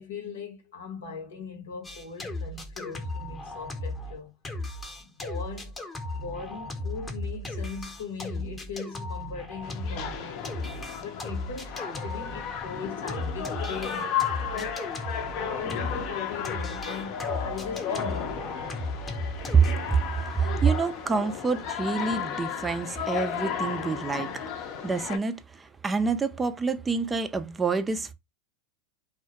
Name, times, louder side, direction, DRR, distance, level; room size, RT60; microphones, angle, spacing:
voice 1, 0.0-4.3 5.0-10.5 11.0-14.1 14.5-14.8 15.3-18.9, left 5 dB, 85° left, 0.9 m, -39 dB
sound 1, 1.8-4.2 4.4-16.1 16.4-19.7, left 2 dB, 15° left, 0.7 m, -36 dB
sound 2, 9.6-25.2, left 7 dB, 55° left, 0.6 m, -34 dB
voice 2, 19.5-24.5 24.8-28.1, right 5 dB, 15° right, 0.3 m, -26 dB
2.2 x 2.1 x 2.8 m
hypercardioid pair, 110°, 0 cm